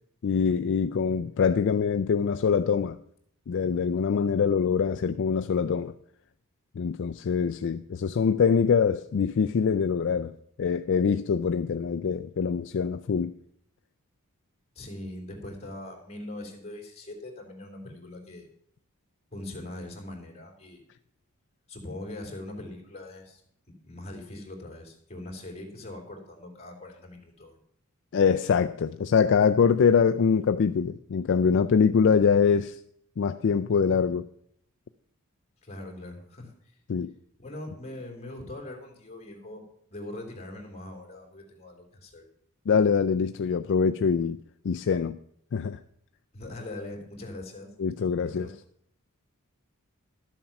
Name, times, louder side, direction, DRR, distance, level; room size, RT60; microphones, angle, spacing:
voice 1, 0.2-3.0 3.5-5.9 6.8-10.3 10.6-13.3 28.1-32.8 33.2-34.3 36.9-37.1 42.7-44.4 44.6-45.2 45.5-45.8 47.8-48.5, left 6 dB, 55° left, 0.4 m, -24 dB
voice 2, 14.7-18.5 19.3-20.8 21.7-23.4 23.8-27.6 35.6-36.7 37.4-39.6 39.9-42.3 46.3-47.7 48.2-48.5, left 1 dB, 30° left, 3.0 m, -41 dB
12.5 x 7.3 x 5.8 m
head